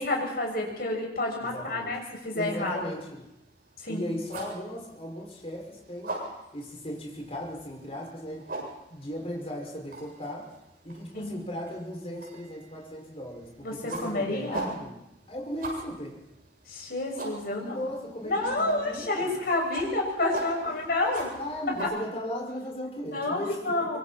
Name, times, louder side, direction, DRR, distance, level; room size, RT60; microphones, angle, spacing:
voice 1, 0.0-2.8 3.8-4.0 11.1-11.3 13.6-14.7 16.7-17.8 18.2-21.3 21.7-21.9 23.1-24.0, left 2 dB, 60° left, 0 dB, 6.9 m, -29 dB
voice 2, 1.4-2.0 2.3-3.3 3.9-6.2 6.5-8.5 8.9-10.5 10.8-15.0 15.3-16.2 17.5-19.4 20.3-20.6 21.3-24.0, equal, 35° left, -1 dB, 6.0 m, -37 dB
sound 1, 2.5-21.8, right 2 dB, 55° right, 7.9 m, -43 dB
25.0 x 24.5 x 4.4 m, 0.87 s
head